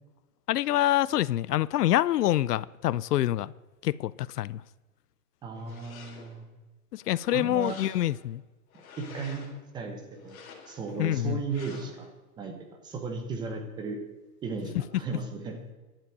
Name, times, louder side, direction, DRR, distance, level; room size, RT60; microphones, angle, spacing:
voice 1, 0.5-3.5 3.8-4.6 6.9-8.4 11.0-11.4, left 14 dB, 80° left, 0.6 m, -26 dB
voice 2, 5.4-6.5 7.3-7.8 9.0-9.5 9.7-10.4 10.7-12.1 12.4-12.5 12.8-14.0 14.4-15.6, right 4 dB, 10° right, 1.0 m, -35 dB
sound 1, 5.5-6.4 6.9-8.3 8.7-9.6 10.2-11.0 11.5-12.1, left 5 dB, 65° left, 3.4 m, -49 dB
11.5 x 7.5 x 9.0 m
hypercardioid pair, 165°, 46 cm